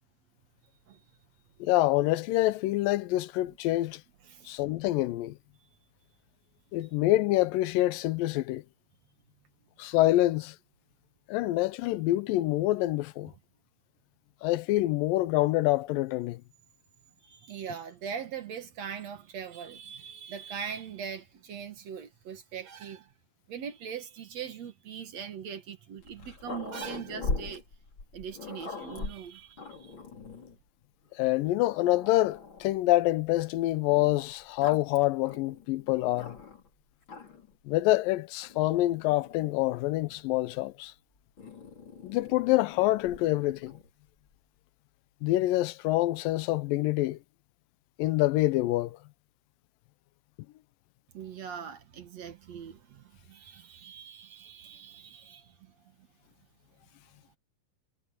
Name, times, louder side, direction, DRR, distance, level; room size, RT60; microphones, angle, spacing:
voice 1, 1.6-4.0 4.5-5.4 6.7-8.6 9.8-10.6 11.3-13.3 14.4-16.4 31.2-36.4 37.7-40.9 42.0-43.8 45.2-47.2 48.0-49.0, left 17 dB, 85° left, 2.4 m, -26 dB
voice 2, 3.5-3.8 4.2-4.6 17.2-23.1 23.5-27.6 28.1-29.9 51.1-55.7 56.0-56.1, right 7 dB, 55° right, 2.4 m, -41 dB
Growling, 26.0-30.6 31.3-31.4 31.7-32.8 33.9-36.7 37.0-37.6 38.4-40.3 41.4-43.9, left 3 dB, 35° left, 4.5 m, -41 dB
omnidirectional pair, 4.0 m